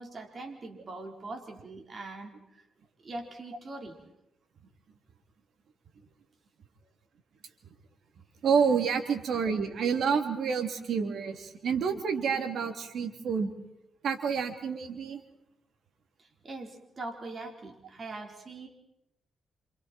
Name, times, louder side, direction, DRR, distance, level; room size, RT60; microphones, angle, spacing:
voice 1, 0.0-2.6 3.0-4.0 16.2-18.7, right 2 dB, 40° right, 2 dB, 4.5 m, -42 dB
voice 2, 8.4-13.5 14.0-15.2, right 6 dB, 70° right, 5 dB, 3.1 m, -28 dB
28.0 x 28.0 x 4.6 m, 0.83 s
cardioid pair, 90°, 0 cm